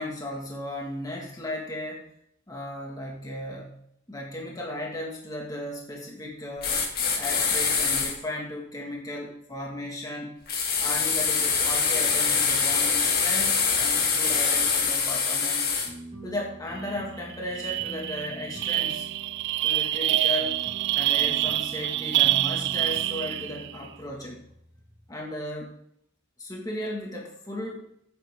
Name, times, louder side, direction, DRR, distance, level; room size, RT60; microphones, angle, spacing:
voice 1, 0.0-2.1 2.5-3.8 4.1-6.8 7.2-10.4 10.8-15.7 16.2-19.1 19.6-20.6 20.9-24.4 25.1-25.8 26.4-27.9, left 1 dB, 20° left, -2 dB, 1.9 m, -35 dB
sound 1, 6.6-8.1 10.5-15.9, left 5 dB, 50° left, 2.2 m, -24 dB
sound 2, 15.8-25.1, right 1 dB, 30° right, 3.7 m, -45 dB
sound 3, 16.9-17.0 17.3-23.7, right 14 dB, 60° right, 0.4 m, -26 dB
14.0 x 8.3 x 3.6 m, 0.72 s
head